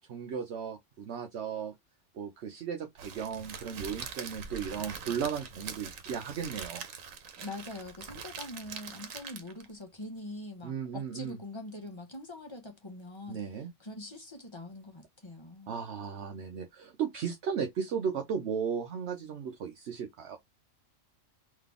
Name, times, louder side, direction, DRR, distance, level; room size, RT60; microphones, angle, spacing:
voice 1, 0.1-1.7 2.1-6.9 10.6-11.4 13.3-13.7 15.7-20.4, right 7 dB, 65° right, 0.9 m, -35 dB
Crackle, 3.0-9.7, right 6 dB, 90° right, 1.2 m, -43 dB
voice 2, 7.4-13.4 13.8-15.7, left 2 dB, 20° left, 1.3 m, -43 dB
3.9 x 3.1 x 3.5 m
omnidirectional pair, 1.3 m